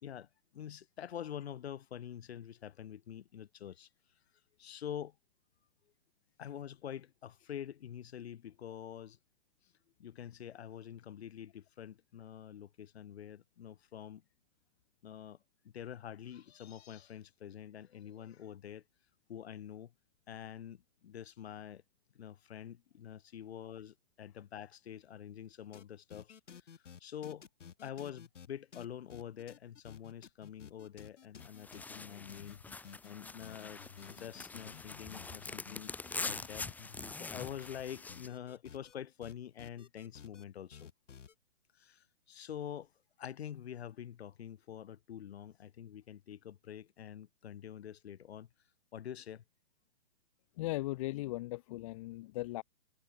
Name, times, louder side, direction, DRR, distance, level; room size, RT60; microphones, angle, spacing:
voice 1, 0.0-3.9 4.6-5.2 6.4-9.2 10.0-14.2 15.0-15.4 15.6-18.8 19.3-19.9 20.3-21.8 22.1-27.5 27.8-32.6 33.0-40.9 41.7-42.9 43.2-48.5 48.9-49.4, left 9 dB, 60° left, 4.3 m, -46 dB
sound 1, 25.7-25.8 26.1-37.8 38.1-38.9 39.2-40.4 40.7-41.3, left 7 dB, 80° left, 5.7 m, -53 dB
sound 2, 31.4-38.3, left 3 dB, 5° left, 2.9 m, -44 dB
voice 2, 50.6-52.6, left 18 dB, 30° left, 1.1 m, -38 dB
hypercardioid pair, 160°, 36 cm